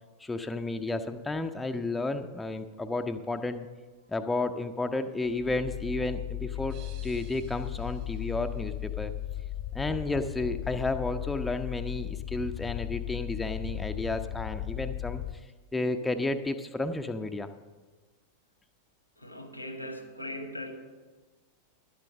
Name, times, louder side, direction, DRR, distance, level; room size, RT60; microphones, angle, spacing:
voice 1, 0.2-3.7 4.1-9.1 9.7-15.2 15.7-17.5, left 2 dB, 10° left, 6 dB, 0.5 m, -32 dB
sound 1, 5.3-15.3, left 13 dB, 45° left, 0.6 m, -36 dB
sound 2, 6.7-9.5, right 7 dB, 45° right, 2.9 m, -57 dB
voice 2, 19.2-20.7, left 1 dB, 90° left, 6 dB, 1.3 m, -39 dB
11.0 x 7.6 x 6.2 m, 1.3 s
figure-of-eight pair, 90°, 0 cm